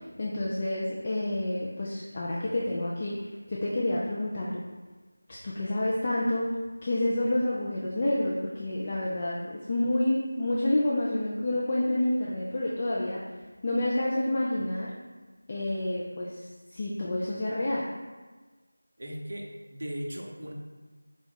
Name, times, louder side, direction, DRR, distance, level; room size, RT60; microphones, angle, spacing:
voice 1, 0.2-4.6 5.3-6.5 6.8-13.2 13.6-14.9 15.5-17.8, left 1 dB, 25° left, -5 dB, 0.3 m, -29 dB
voice 2, 19.0-20.5, equal, 50° right, 0 dB, 0.6 m, -37 dB
4.6 x 2.3 x 4.2 m, 1.3 s
figure-of-eight pair, 170°, 0 cm